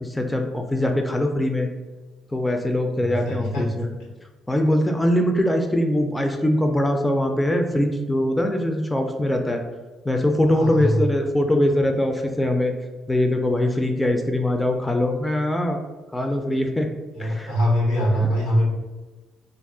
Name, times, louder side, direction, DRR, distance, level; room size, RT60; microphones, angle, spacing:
voice 1, 0.0-1.7 2.3-3.9 4.5-9.6 10.0-12.7 13.1-15.8 16.1-16.9 17.2-17.5, left 1 dB, 10° left, 4 dB, 0.3 m, -22 dB
voice 2, 3.0-3.7 10.4-11.0 17.2-18.7, equal, 90° left, -2 dB, 0.8 m, -23 dB
2.3 x 2.1 x 3.6 m, 1.2 s
cardioid pair, 90°, 0 cm